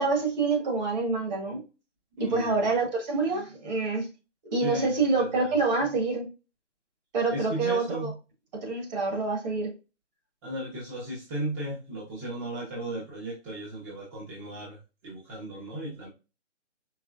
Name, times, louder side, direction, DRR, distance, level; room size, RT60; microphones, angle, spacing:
voice 1, 0.0-1.6 2.2-4.1 4.5-6.3 7.1-8.1 8.6-9.7, right 3 dB, 35° right, 2 dB, 1.6 m, -26 dB
voice 2, 2.2-2.5 4.6-5.3 7.3-8.1 10.4-14.8 15.0-16.1, right 1 dB, 15° right, -6 dB, 1.1 m, -35 dB
4.9 x 3.4 x 2.4 m, 0.30 s
hypercardioid pair, 150°, 36 cm